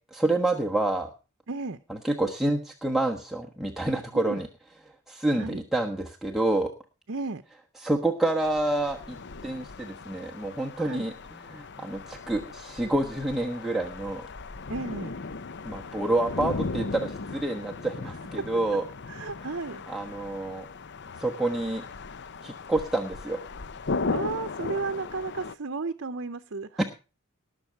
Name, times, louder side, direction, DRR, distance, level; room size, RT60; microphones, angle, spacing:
voice 1, 0.1-1.1 1.9-4.5 5.1-6.7 7.8-9.2 9.4-11.1 11.5-14.3 15.6-18.8 19.9-20.7 21.2-21.8 22.4-23.4 26.8-26.9, right 2 dB, ahead, 0 dB, 1.3 m, -28 dB
voice 2, 1.5-1.8 4.1-4.4 5.3-5.6 7.1-7.4 10.8-11.1 14.7-15.1 18.0-18.5 19.1-19.8 23.9-26.8, right 3 dB, 60° right, 11 dB, 0.8 m, -34 dB
sound 1, 8.4-25.5, left 3 dB, 55° left, 0.7 m, -37 dB
19.5 x 6.8 x 4.6 m, 0.33 s
head